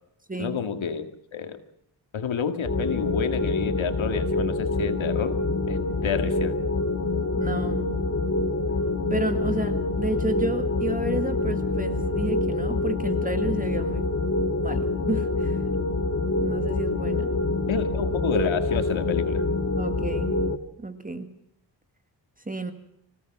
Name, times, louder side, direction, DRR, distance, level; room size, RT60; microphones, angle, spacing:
voice 1, 0.4-1.6 2.1-5.4 5.7-6.6 17.7-19.4, left 7 dB, 90° left, 8 dB, 2.1 m, -29 dB
sound 1, 2.6-20.6, left 2 dB, 30° left, 1.7 m, -26 dB
voice 2, 7.4-8.0 9.1-14.1 14.6-15.6 16.4-17.4 19.8-20.4 20.8-21.3 22.5-22.7, right 2 dB, 20° right, 8 dB, 1.8 m, -31 dB
26.5 x 17.0 x 6.1 m, 0.80 s
cardioid pair, 80°, 46 cm